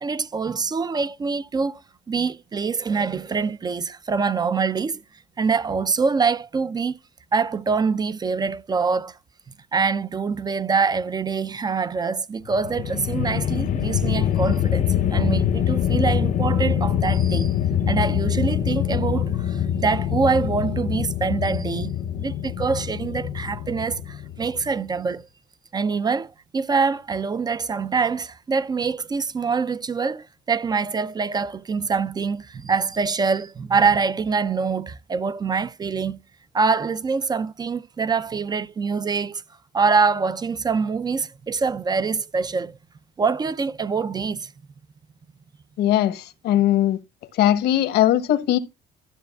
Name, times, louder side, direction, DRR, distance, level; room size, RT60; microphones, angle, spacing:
voice 1, 0.0-1.8 2.1-5.0 5.4-7.0 7.3-9.2 9.7-17.5 17.9-21.9 22.2-25.2 25.7-36.2 36.5-39.4 39.7-42.8 43.2-44.5, right 5 dB, 25° right, 0.4 m, -24 dB
sound 1, 12.4-24.8, left 9 dB, 50° left, 0.6 m, -24 dB
voice 2, 45.8-47.0 47.3-48.6, left 12 dB, 80° left, 1.1 m, -19 dB
12.5 x 6.7 x 2.2 m
cardioid pair, 110°, 17 cm